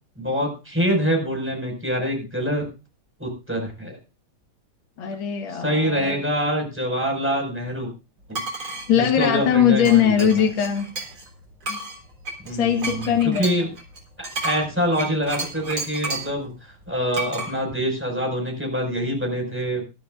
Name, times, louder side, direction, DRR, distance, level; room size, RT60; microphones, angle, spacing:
voice 1, 0.2-2.7 3.2-4.0 5.5-7.9 8.3-8.4 8.9-10.3 12.4-13.7 14.2-19.8, equal, 5° right, 1 dB, 5.5 m, -25 dB
voice 2, 5.0-6.2 8.6-10.9 11.7-11.8 12.5-13.5, left 9 dB, 65° left, 4 dB, 2.3 m, -21 dB
sound 1, 8.3-8.9 9.9-11.3 11.6-16.4 17.1-17.5, right 2 dB, 70° right, 4.9 m, -31 dB
21.5 x 12.5 x 2.5 m, 0.30 s
omnidirectional pair, 2.4 m